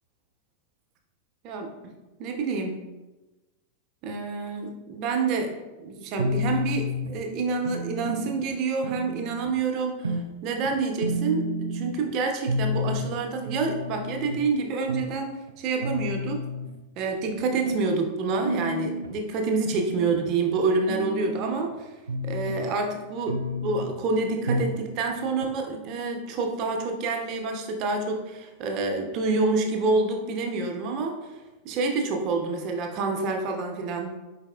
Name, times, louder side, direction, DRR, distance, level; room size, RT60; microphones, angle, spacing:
voice 1, 1.4-1.9 2.2-2.8 4.0-5.5 5.8-16.4 17.0-21.9 22.2-31.2 31.6-34.2, right 3 dB, 40° right, 2 dB, 0.7 m, -28 dB
sound 1, 6.2-7.1 7.6-8.4 8.8-9.5 10.0-10.3 10.6-10.7 11.0-12.0 12.5-13.1 13.5-14.4 14.9-15.1 15.5-15.6 15.8-16.7 17.3-17.9 18.4-19.1 19.6-20.2 20.6-21.7 22.1-22.7 23.3-23.9 24.5-24.8 25.1-25.2 25.4-25.5, equal, 75° right, 0.4 m, -30 dB
4.7 x 4.0 x 2.3 m, 1.1 s
figure-of-eight pair, 90°, 0 cm